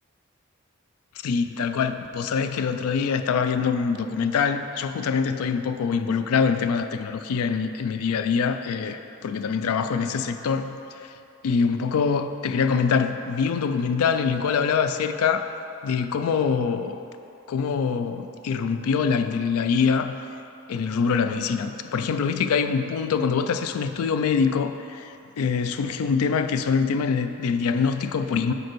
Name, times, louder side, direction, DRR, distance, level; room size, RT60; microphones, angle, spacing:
voice 1, 1.2-10.7 11.0-11.1 11.4-15.5 15.8-17.0 17.5-20.2 20.7-28.5, left 6 dB, 85° left, 9 dB, 0.3 m, -24 dB
5.2 x 4.4 x 6.1 m, 2.8 s
head